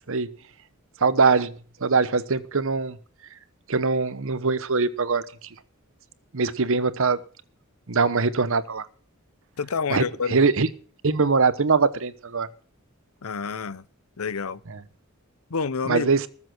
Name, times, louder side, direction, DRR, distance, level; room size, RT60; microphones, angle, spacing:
voice 1, 1.0-1.5 1.8-3.0 3.7-5.2 6.3-7.2 7.9-8.9 9.9-10.0 10.3-10.7 11.0-12.5 14.7-14.8 15.9-16.3, right 4 dB, 65° right, 1.0 m, -22 dB
voice 2, 9.6-10.4 13.2-13.9 14.2-14.6 15.5-16.1, left 5 dB, 80° left, 0.7 m, -28 dB
20.0 x 7.5 x 6.1 m
head